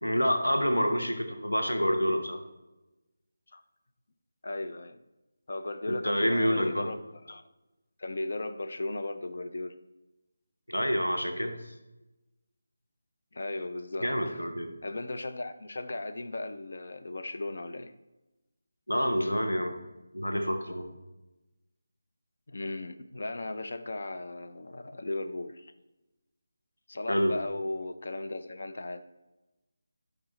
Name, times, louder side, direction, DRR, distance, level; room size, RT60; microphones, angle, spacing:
voice 1, 0.0-2.4 5.9-6.9 10.7-11.6 14.0-14.7 18.9-19.8 20.1-20.9 27.1-27.4, equal, 90° left, 1.1 m, -27 dB
voice 2, 4.4-5.0 5.5-7.0 7.3-7.4 8.0-9.8 13.3-14.4 14.8-17.9 22.5-25.7 26.9-29.0, left 2 dB, 60° left, 0.5 m, -36 dB
11.5 x 5.0 x 3.1 m
figure-of-eight pair, 160°, 0 cm